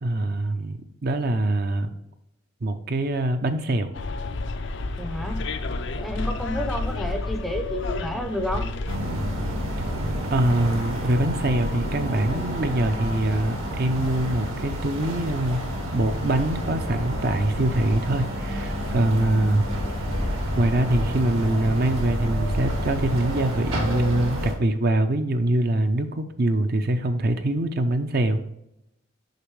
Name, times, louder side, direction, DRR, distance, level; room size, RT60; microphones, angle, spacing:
voice 1, 0.0-1.9 2.6-3.9 10.3-15.6 15.9-19.7 20.5-28.4, right 1 dB, 45° right, 8 dB, 0.5 m, -24 dB
Bus, 3.9-9.0, left 3 dB, 55° left, 0.4 m, -30 dB
voice 2, 5.0-5.5 6.0-8.7, equal, ahead, 5 dB, 0.5 m, -30 dB
sound 1, 8.9-24.5, equal, 70° right, 1.5 m, -29 dB
6.6 x 5.0 x 3.2 m, 0.82 s
head